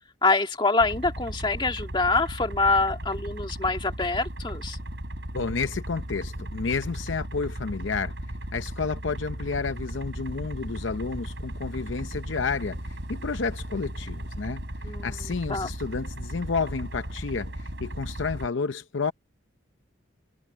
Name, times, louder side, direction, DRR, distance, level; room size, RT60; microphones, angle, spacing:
voice 1, 0.2-4.8 14.8-15.7, left 3 dB, 25° left, 2.0 m, -25 dB
sound 1, 0.8-18.5, right 1 dB, 60° right, 5.0 m, -36 dB
voice 2, 5.3-8.1 8.5-12.8 13.1-19.1, left 4 dB, 70° left, 0.7 m, -31 dB
head